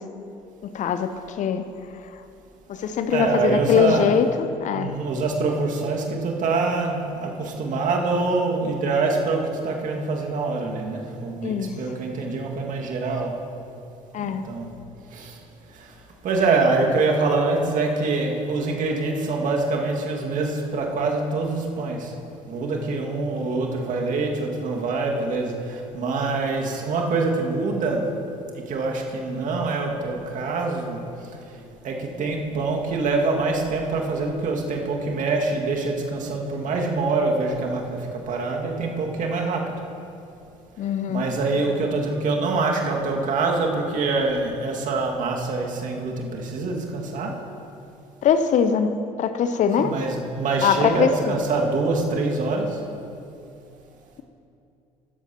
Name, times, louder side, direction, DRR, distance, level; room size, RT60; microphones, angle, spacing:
voice 1, 0.6-1.6 2.7-4.9 11.4-11.7 14.1-14.4 40.8-41.3 48.2-48.9 49.2-49.9 50.6-51.3, left 7 dB, 45° left, 10 dB, 0.7 m, -22 dB
voice 2, 3.1-4.1 4.7-13.4 14.2-14.7 15.1-15.4 15.8-15.9 16.2-22.1 22.5-28.1 28.5-31.0 31.8-39.7 41.1-47.4 49.8-52.8, right 3 dB, 50° right, 0 dB, 2.0 m, -25 dB
18.0 x 13.5 x 2.9 m, 2.7 s
figure-of-eight pair, 55°, 18 cm